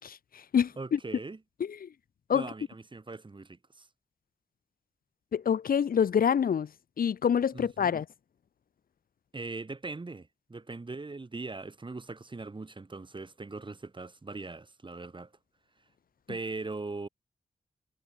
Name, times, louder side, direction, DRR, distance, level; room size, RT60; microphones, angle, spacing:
voice 1, 0.0-1.0 1.6-1.9 2.3-2.5 5.3-6.7 7.0-8.1, left 7 dB, 75° left, 0.7 m, -27 dB
voice 2, 0.8-1.4 2.3-3.9 7.5-8.0 9.3-15.3 16.3-17.1, right 3 dB, 35° right, 1.6 m, -40 dB
cardioid pair, 60°, 15 cm